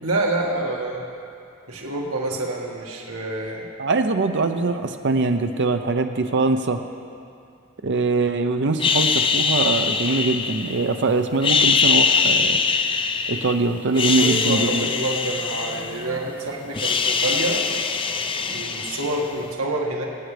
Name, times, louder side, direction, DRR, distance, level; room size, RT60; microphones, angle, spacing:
voice 1, 0.0-1.1 1.7-3.7 14.2-17.7 18.5-20.1, right 1 dB, 80° right, -1 dB, 1.7 m, -27 dB
voice 2, 3.8-6.8 7.8-12.6 13.3-14.9, right 3 dB, 55° right, 6 dB, 0.6 m, -22 dB
sound 1, 8.8-10.9 11.3-13.5 13.9-16.3 16.5-19.4, left 5 dB, 25° left, 0.4 m, -22 dB
23.0 x 9.2 x 3.3 m, 2.5 s
head